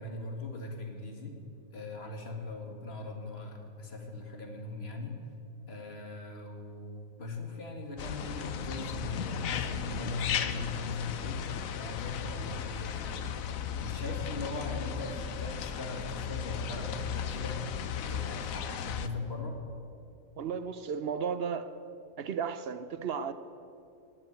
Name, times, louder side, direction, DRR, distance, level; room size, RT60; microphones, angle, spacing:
voice 1, 0.0-1.4 1.7-5.2 5.7-11.5 11.7-13.2 13.8-17.6 18.1-19.6, left 2 dB, 50° left, 2 dB, 2.1 m, -39 dB
sound 1, 8.0-19.1, left 8 dB, 85° left, 1.2 m, -36 dB
voice 2, 20.4-21.8 22.2-23.3, right 6 dB, 55° right, 12 dB, 0.8 m, -34 dB
18.0 x 7.8 x 9.2 m, 2.6 s
omnidirectional pair, 1.4 m